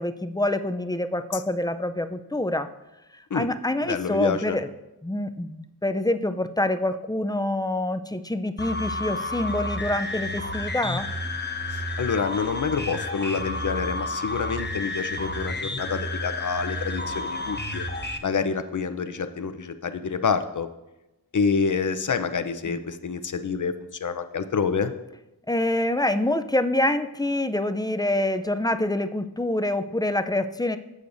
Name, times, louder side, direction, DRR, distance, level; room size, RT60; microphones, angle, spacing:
voice 1, 0.0-2.7 3.3-4.7 5.0-11.1 22.7-22.8 25.5-30.8, left 1 dB, 10° left, 9 dB, 0.5 m, -26 dB
voice 2, 3.8-4.6 11.7-17.8 18.2-20.7 21.3-24.9, left 5 dB, 50° left, 10 dB, 0.7 m, -27 dB
sound 1, 8.6-18.2, left 2 dB, 25° left, 1.0 m, -31 dB
15.5 x 6.5 x 2.6 m, 0.96 s
wide cardioid pair, 50°, 40 cm